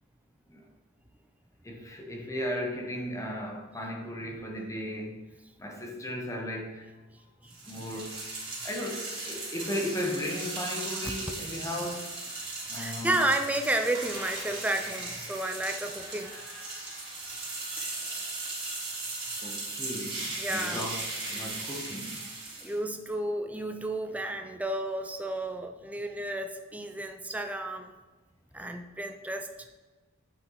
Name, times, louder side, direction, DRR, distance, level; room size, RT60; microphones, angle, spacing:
voice 1, 1.6-5.3 5.6-6.9 7.6-8.3 8.6-12.2 12.7-13.2 19.4-22.3, left 1 dB, 15° left, 1 dB, 0.8 m, -36 dB
sound 1, 7.5-22.8, right 2 dB, 25° right, 2.1 m, -37 dB
voice 2, 12.7-16.3 20.4-20.9 22.6-27.9 28.5-29.7, right 1 dB, 5° right, 5 dB, 0.4 m, -32 dB
8.0 x 4.4 x 3.9 m, 1.2 s
head